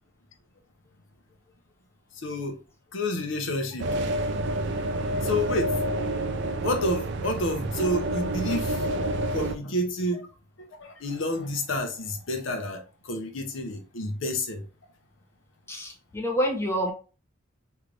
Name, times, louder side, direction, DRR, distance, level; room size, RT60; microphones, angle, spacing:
voice 1, 2.1-2.6 2.9-4.0 5.2-5.8 6.6-8.8 9.3-10.3 10.6-14.6, left 1 dB, 70° left, 0.7 m, -29 dB
sound 1, 3.8-9.5, right 1 dB, 60° right, 0.4 m, -28 dB
voice 2, 15.7-16.9, equal, 15° left, 0.7 m, -27 dB
3.3 x 2.6 x 3.1 m
head